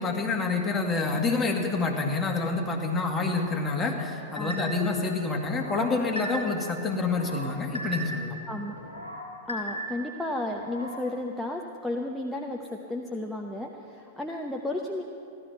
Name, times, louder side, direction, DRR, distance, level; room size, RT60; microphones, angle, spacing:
voice 1, 0.0-8.4, left 3 dB, 20° left, 2 dB, 2.0 m, -27 dB
voice 2, 4.4-4.7 8.5-8.8 9.5-15.0, left 1 dB, 5° left, 0 dB, 0.9 m, -33 dB
sound 1, 4.4-4.9 5.4-6.7 7.0-8.4 8.8-10.1 10.5-11.0, right 1 dB, 90° right, 3.8 m, -37 dB
15.5 x 12.5 x 5.8 m, 2.6 s
figure-of-eight pair, 100°, 0 cm